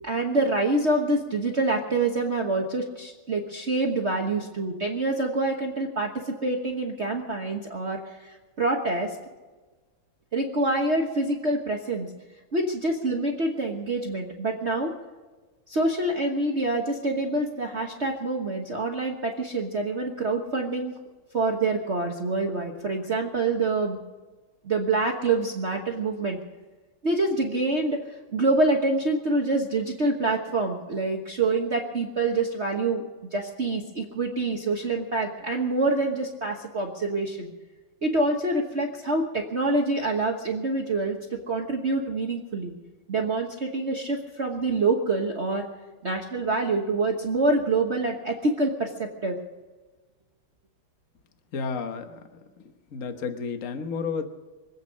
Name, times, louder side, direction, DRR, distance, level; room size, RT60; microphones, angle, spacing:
voice 1, 0.0-9.2 10.3-12.1 12.5-14.9 15.7-20.9 21.3-24.0 24.6-26.4 27.0-33.0 33.3-37.5 38.0-42.7 43.1-45.7 46.0-49.4, right 2 dB, 35° right, 1 dB, 1.3 m, -26 dB
voice 2, 51.5-52.4 52.9-54.2, left 5 dB, 45° left, 7 dB, 1.4 m, -31 dB
24.5 x 8.9 x 6.3 m, 1.3 s
omnidirectional pair, 2.4 m